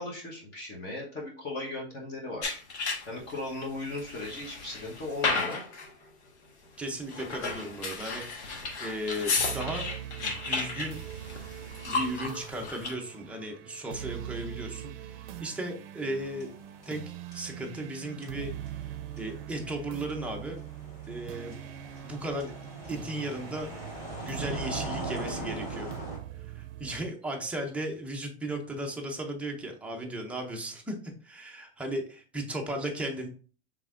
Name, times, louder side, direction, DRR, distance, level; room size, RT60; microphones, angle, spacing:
voice 1, 0.0-2.6 3.1-5.6, left 2 dB, 30° left, -2 dB, 1.1 m, -37 dB
sound 1, 2.4-3.3 3.8-5.9 7.0-12.9, left 4 dB, 85° left, 1.4 m, -33 dB
voice 2, 6.8-9.9 10.2-11.0 11.8-16.5 16.9-18.8 19.2-20.6 21.1-21.6 22.0-22.5 22.9-23.7 24.2-25.9 26.6-33.3, right 1 dB, 5° right, 1 dB, 0.5 m, -36 dB
sound 2, 9.4-27.1, right 11 dB, 55° right, 0.6 m, -42 dB
sound 3, 16.2-17.1 17.3-26.2, right 1 dB, 45° left, 2.4 m, -41 dB
5.4 x 3.6 x 2.5 m, 0.40 s
supercardioid pair, 140°, 33 cm